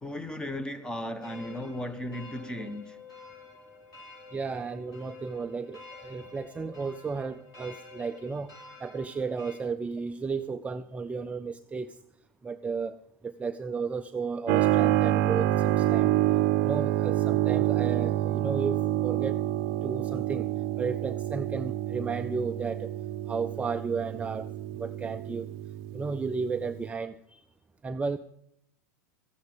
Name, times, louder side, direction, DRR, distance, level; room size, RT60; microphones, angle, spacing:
voice 1, 0.0-3.0 6.2-6.3, left 1 dB, 10° left, 1.1 m, -36 dB
sound 1, 1.2-9.5, left 4 dB, 40° left, 5.2 m, -49 dB
voice 2, 4.3-8.5 8.8-12.0 12.4-16.1 16.6-19.4 19.8-20.5 20.8-22.9 23.3-24.5 24.7-25.5 25.9-27.4 27.8-28.2, right 4 dB, 15° right, 0.5 m, -33 dB
Keyboard (musical), 14.5-26.9, right 14 dB, 55° right, 0.7 m, -27 dB
14.0 x 10.0 x 5.2 m
hypercardioid pair, 105°, 10 cm